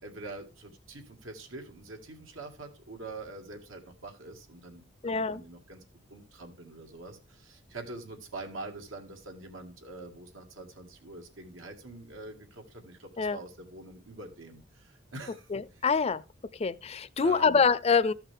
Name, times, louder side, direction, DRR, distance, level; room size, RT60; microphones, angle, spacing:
voice 1, 0.0-5.8 6.1-15.5 17.2-17.6, right 2 dB, 90° right, 2.1 m, -45 dB
voice 2, 5.0-5.4 13.2-13.4 15.5-16.2 16.6-18.1, left 5 dB, 30° left, 0.4 m, -25 dB
13.5 x 5.8 x 3.5 m
head